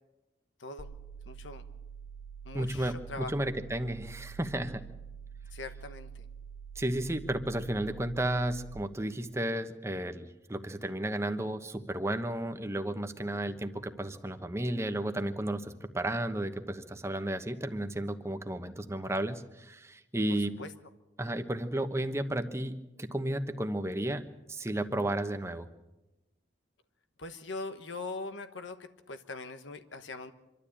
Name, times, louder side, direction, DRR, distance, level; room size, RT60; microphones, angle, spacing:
voice 1, 0.6-0.9 1.2-1.6 2.4-3.3 5.5-6.1 20.3-20.7 27.2-30.3, left 3 dB, 85° left, 9 dB, 1.3 m, -41 dB
sound 1, 0.8-8.8, right 7 dB, 55° left, 5.2 m, -46 dB
voice 2, 2.5-4.8 6.7-20.6 21.2-24.2 24.5-25.7, right 1 dB, 15° right, 8 dB, 1.1 m, -33 dB
26.0 x 12.5 x 8.6 m, 1.0 s
head